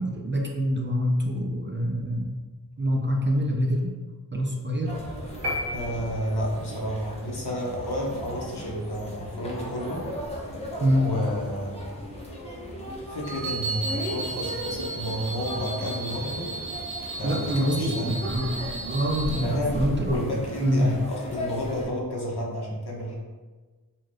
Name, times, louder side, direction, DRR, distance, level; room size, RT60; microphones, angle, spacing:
voice 1, 0.0-2.3 2.8-3.9 4.3-5.0 10.8-11.1 17.2-20.3 20.6-20.9, equal, 30° right, 1 dB, 0.4 m, -25 dB
sound 1, 4.8-21.9, equal, 15° left, 0.7 m, -37 dB
sound 2, 5.4-6.7, left 1 dB, 80° right, 0.7 m, -32 dB
voice 2, 5.7-10.0 11.0-11.8 13.0-16.5 17.1-18.2 19.4-23.2, equal, 70° left, -3 dB, 0.8 m, -31 dB
sound 3, 13.2-19.5, right 3 dB, 60° right, 1.0 m, -35 dB
2.6 x 2.3 x 3.2 m, 1.3 s
wide cardioid pair, 45°, 40 cm